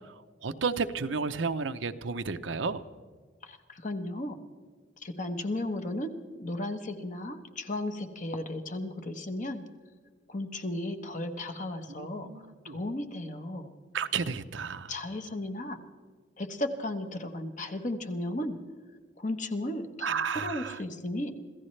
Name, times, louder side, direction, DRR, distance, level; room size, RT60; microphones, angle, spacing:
voice 1, 0.4-2.8 12.0-12.8 13.9-14.9 20.0-20.8, right 5 dB, 80° right, 10 dB, 0.8 m, -32 dB
voice 2, 3.4-4.4 5.0-6.1 6.4-9.6 10.3-12.3 12.6-13.7 14.9-15.8 16.4-18.6 19.2-21.3, left 1 dB, 40° left, 7 dB, 1.2 m, -35 dB
26.5 x 15.0 x 3.3 m, 1.5 s
head